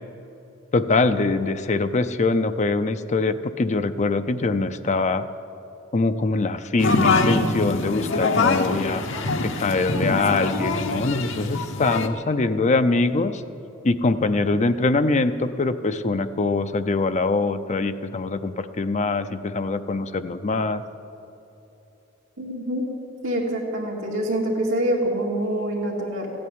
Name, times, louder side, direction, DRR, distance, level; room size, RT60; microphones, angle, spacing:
voice 1, 0.7-5.2 5.9-9.0 9.4-13.4 13.8-20.8, left 3 dB, 35° left, 10 dB, 0.5 m, -23 dB
sound 1, 6.8-12.1, left 3 dB, 65° left, 1.0 m, -24 dB
voice 2, 22.4-22.8 23.2-26.3, right 1 dB, 85° right, -4 dB, 2.5 m, -25 dB
15.0 x 8.7 x 9.3 m, 2.9 s
head